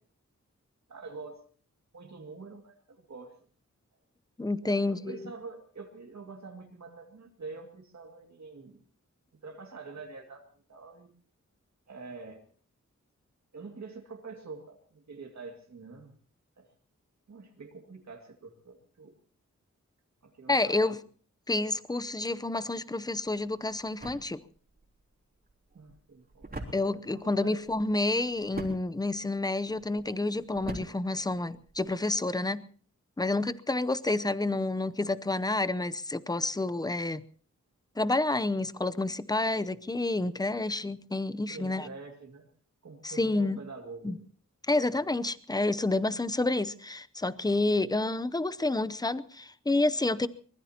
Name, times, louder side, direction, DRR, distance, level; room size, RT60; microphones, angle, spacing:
voice 1, 0.9-1.4 1.9-3.3 4.6-8.8 9.4-11.1 11.9-12.5 13.5-16.1 16.6-16.7 17.3-19.1 20.2-21.0 25.7-26.5 26.8-27.7 41.5-42.5 42.8-44.1, right 4 dB, 65° right, 2 dB, 2.3 m, -46 dB
voice 2, 4.4-5.3 20.5-21.0 21.5-24.4 26.7-32.6 33.2-37.2 38.0-41.9 43.0-43.6 44.0-44.2 44.7-50.3, left 2 dB, 15° left, 14 dB, 0.7 m, -29 dB
sound 1, 23.2-32.0, right 1 dB, 30° right, 3.5 m, -45 dB
24.0 x 20.0 x 2.9 m, 0.43 s
wide cardioid pair, 120°, 30 cm